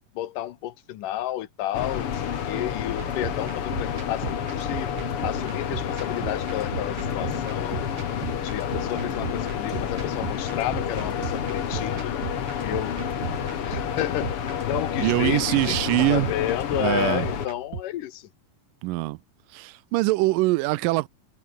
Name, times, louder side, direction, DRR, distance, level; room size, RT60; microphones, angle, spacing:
voice 1, 0.2-2.1 2.5-4.9 5.2-7.9 8.4-12.2 12.6-12.9 13.6-18.3, left 13 dB, 75° left, 2.6 m, -31 dB
sound 1, 1.7-17.5, left 8 dB, 50° left, 2.2 m, -29 dB
sound 2, 3.0-17.8, right 6 dB, 60° right, 5.0 m, -37 dB
voice 2, 15.0-16.3 16.8-17.3 18.8-19.2 19.5-21.1, right 20 dB, 85° right, 2.2 m, -23 dB
omnidirectional pair, 4.0 m